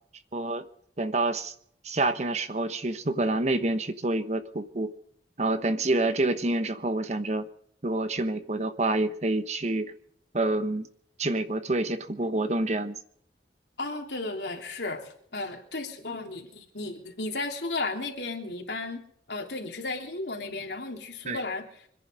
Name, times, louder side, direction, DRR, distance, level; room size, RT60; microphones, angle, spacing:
voice 1, 0.3-0.6 1.0-1.5 1.8-4.9 5.4-7.5 7.8-9.9 10.3-10.9 11.2-12.9 21.2-21.4, right 2 dB, 40° right, 11 dB, 1.0 m, -27 dB
voice 2, 13.8-19.0 19.3-21.8, left 3 dB, 75° left, 1 dB, 3.4 m, -34 dB
25.5 x 10.5 x 5.2 m, 0.65 s
head